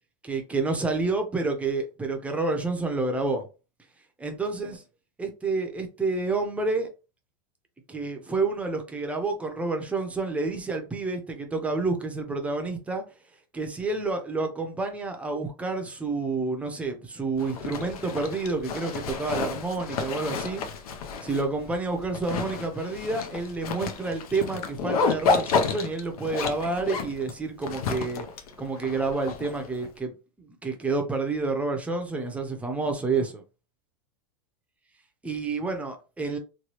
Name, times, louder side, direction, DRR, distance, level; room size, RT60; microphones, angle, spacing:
voice 1, 0.2-3.4 4.2-4.8 5.2-6.9 7.9-13.0 13.5-20.6 21.2-28.2 28.6-33.4 35.2-36.4, right 3 dB, 5° right, 0.6 m, -29 dB
Zipper (clothing), 17.4-29.9, left 5 dB, 80° left, 0.6 m, -31 dB
3.1 x 2.2 x 2.9 m
supercardioid pair, 135°, 19 cm